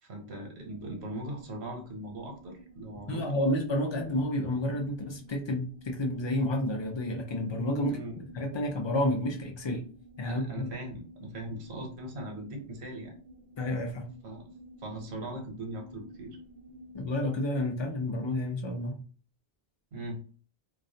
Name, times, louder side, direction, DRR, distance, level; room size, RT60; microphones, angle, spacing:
voice 1, 0.0-3.3 7.8-8.2 10.2-13.1 14.2-14.5 14.8-16.4 19.9-20.2, right 1 dB, 85° right, 2 dB, 1.0 m, -40 dB
sound 1, 0.6-17.0, right 1 dB, 55° right, 0.6 m, -52 dB
voice 2, 3.1-9.9 10.2-10.7 13.6-14.1 16.9-19.0, left 1 dB, 50° left, 2 dB, 0.3 m, -30 dB
2.3 x 2.1 x 2.6 m, 0.39 s
omnidirectional pair, 1.1 m